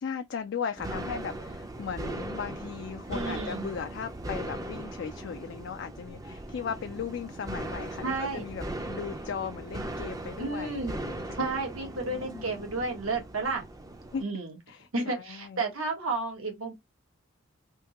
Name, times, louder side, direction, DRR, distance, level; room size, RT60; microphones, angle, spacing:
voice 1, 0.0-11.2 12.1-12.5 14.1-14.2 14.7-15.7, left 6 dB, 55° left, 0.3 m, -37 dB
sound 1, 0.8-14.2, right 1 dB, 15° right, 0.5 m, -39 dB
voice 2, 3.1-3.7 8.0-8.5 10.4-11.0 11.4-13.6 14.2-14.6 14.9-16.7, right 3 dB, 80° right, 1.3 m, -32 dB
3.6 x 2.7 x 2.9 m
head